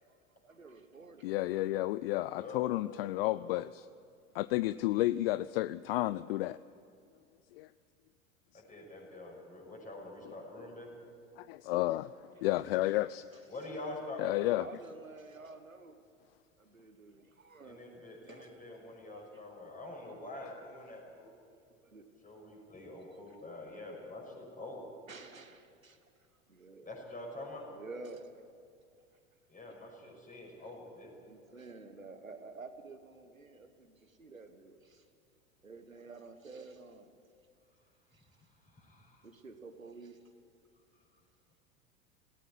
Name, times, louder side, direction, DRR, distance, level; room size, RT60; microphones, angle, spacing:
voice 1, 0.4-1.3 12.3-12.4 14.5-16.0 16.6-19.6 21.8-22.7 23.1-23.3 23.9-24.1 25.1-26.0 26.5-26.9 27.3-27.4 27.7-28.5 29.7-29.8 31.2-35.0 35.6-37.1 38.1-38.3 39.2-40.2, right 3 dB, 90° right, 8 dB, 1.3 m, -51 dB
voice 2, 1.2-3.9 4.3-6.6 7.5-7.7 11.4-13.2 14.2-14.7, left 17 dB, 50° left, 18 dB, 0.5 m, -32 dB
voice 3, 2.3-3.0 3.3-3.5 8.5-10.9 13.5-14.5 17.6-21.3 22.2-24.8 26.8-27.6 29.5-31.1 38.7-39.3, left 2 dB, 20° left, 0 dB, 6.4 m, -46 dB
17.5 x 17.0 x 9.9 m, 2.3 s
figure-of-eight pair, 80°, 39 cm